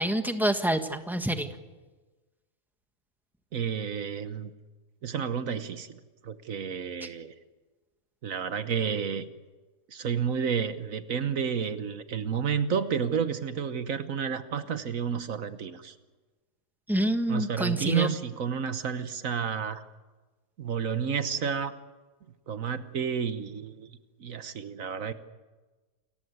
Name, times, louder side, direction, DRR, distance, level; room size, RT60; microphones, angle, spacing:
voice 1, 0.0-1.5 16.9-18.1, right 1 dB, ahead, 7 dB, 1.4 m, -27 dB
voice 2, 3.5-4.5 5.0-7.3 8.2-9.3 9.9-15.9 17.3-19.8 20.6-21.7 22.5-25.1, right 7 dB, 65° right, 11 dB, 1.4 m, -31 dB
29.0 x 15.0 x 9.4 m, 1.2 s
omnidirectional pair, 1.6 m